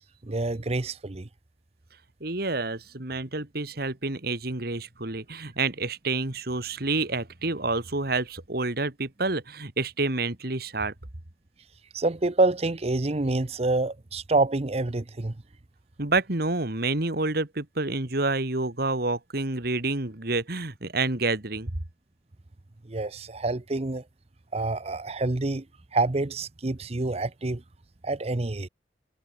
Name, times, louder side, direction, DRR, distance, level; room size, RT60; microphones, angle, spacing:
voice 1, 0.2-1.3 11.9-15.4 22.9-24.0 24.5-25.6 25.9-27.6 28.0-28.7, right 2 dB, 35° right, 0.8 m, -27 dB
voice 2, 2.2-10.9 16.0-21.7, right 3 dB, 55° right, 2.1 m, -28 dB
head